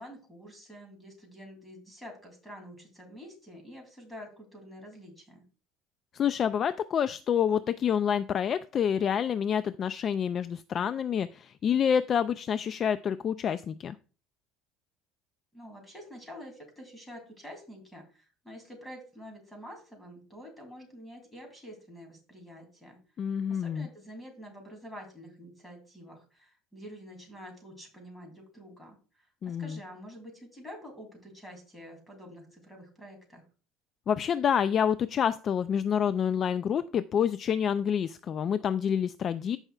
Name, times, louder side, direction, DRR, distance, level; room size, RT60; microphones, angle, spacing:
voice 1, 0.0-5.4 15.5-23.0 23.5-33.4, equal, 5° left, 2 dB, 2.8 m, -47 dB
voice 2, 6.1-14.0 23.2-23.9 29.4-29.8 34.1-39.6, left 8 dB, 35° left, 13 dB, 0.3 m, -28 dB
14.5 x 5.5 x 2.3 m, 0.37 s
cardioid pair, 145°, 0 cm